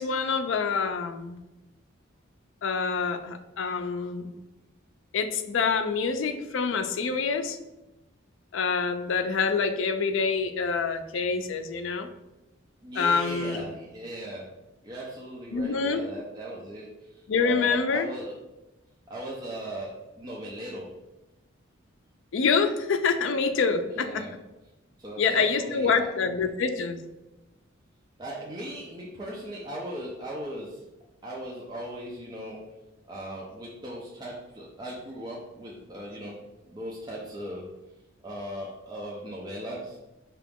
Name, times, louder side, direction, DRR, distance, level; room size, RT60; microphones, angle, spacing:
voice 1, 0.0-1.4 2.6-4.3 5.1-7.6 8.5-12.1 13.0-13.7 15.5-16.0 17.3-18.1 22.3-24.2 25.2-27.0, left 5 dB, 70° left, 9 dB, 0.4 m, -26 dB
voice 2, 12.8-14.5 14.8-18.3 19.1-20.8 23.8-24.3 25.0-26.1 28.2-30.8 31.2-32.6 33.1-36.4 36.7-37.6 38.2-40.0, right 1 dB, 20° right, -4 dB, 0.5 m, -38 dB
4.9 x 2.9 x 3.5 m, 1.0 s
head